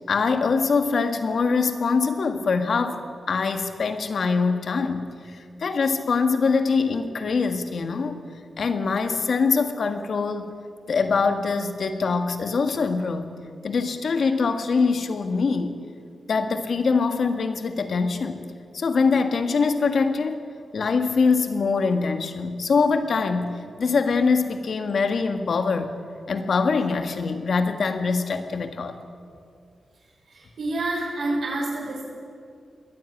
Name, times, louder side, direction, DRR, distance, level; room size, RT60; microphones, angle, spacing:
voice 1, 0.1-5.1 5.6-8.2 8.6-10.6 10.9-13.3 13.6-15.8 16.3-18.4 18.7-20.4 20.7-25.9 26.3-29.0, left 4 dB, 65° left, 7 dB, 1.7 m, -23 dB
voice 2, 30.3-32.0, right 2 dB, 85° right, -6 dB, 6.7 m, -28 dB
21.5 x 13.5 x 9.9 m, 2.3 s
wide cardioid pair, 95°, 0 cm